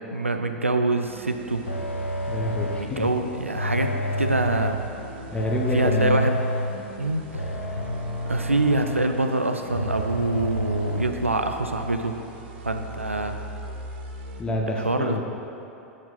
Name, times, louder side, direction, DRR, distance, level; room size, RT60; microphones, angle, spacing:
voice 1, 0.0-1.6 2.8-4.8 5.7-6.4 7.0-7.7 8.3-12.1 12.6-13.4 14.7-15.2, right 2 dB, 85° right, 6 dB, 0.5 m, -25 dB
sound 1, 1.1-14.4, right 1 dB, 50° right, 0.9 m, -41 dB
sound 2, 1.7-3.0 3.5-4.9 5.4-6.8 7.3-9.3 9.7-11.1, left 1 dB, 80° left, 0.7 m, -29 dB
voice 2, 2.3-3.1 3.9-4.0 5.3-6.2 14.4-15.2, left 1 dB, 15° left, 0 dB, 1.0 m, -27 dB
9.8 x 6.1 x 4.1 m, 2.8 s
figure-of-eight pair, 90°, 7 cm